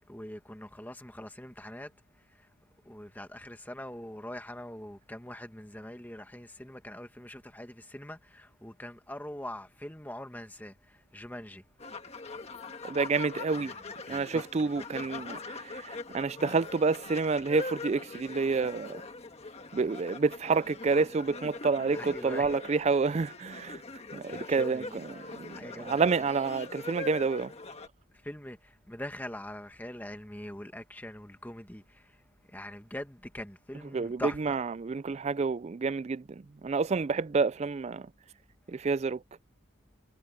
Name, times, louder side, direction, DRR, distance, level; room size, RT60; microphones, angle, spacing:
voice 1, 0.1-1.9 2.4-2.5 2.8-11.6 13.5-14.9 15.2-15.3 21.9-22.8 24.3-25.0 25.5-26.3 28.2-32.1 32.5-34.6, left 1 dB, 10° left, 1.4 m, -43 dB
sound 1, 11.8-27.9, left 3 dB, 30° left, 1.5 m, -42 dB
voice 2, 12.8-13.7 14.1-19.0 19.7-23.8 24.1-27.5 33.9-38.1 38.7-39.2, right 4 dB, 30° right, 0.3 m, -29 dB
head